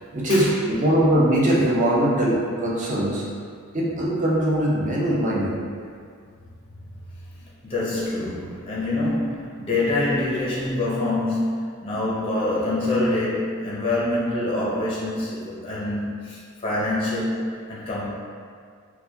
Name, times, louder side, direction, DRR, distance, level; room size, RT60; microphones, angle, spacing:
voice 1, 0.0-3.2 3.7-5.6, right 1 dB, 35° right, -5 dB, 0.6 m, -21 dB
voice 2, 7.3-18.1, left 2 dB, 25° left, -6 dB, 0.5 m, -25 dB
4.7 x 2.2 x 2.6 m, 2.1 s
head